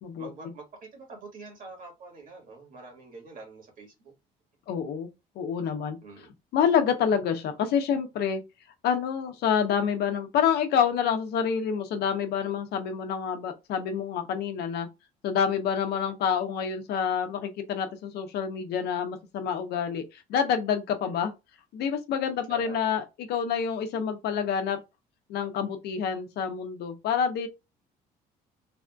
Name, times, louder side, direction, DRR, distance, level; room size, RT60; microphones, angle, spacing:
voice 1, 0.2-4.1 6.0-6.3 22.5-22.9, right 3 dB, 55° right, 1.7 m, -45 dB
voice 2, 4.7-5.1 5.4-6.0 6.5-8.4 8.8-14.9 15.2-21.3 21.7-24.8 25.3-27.5, left 7 dB, 75° left, 0.8 m, -27 dB
3.4 x 2.5 x 2.2 m
cardioid pair, 110°, 17 cm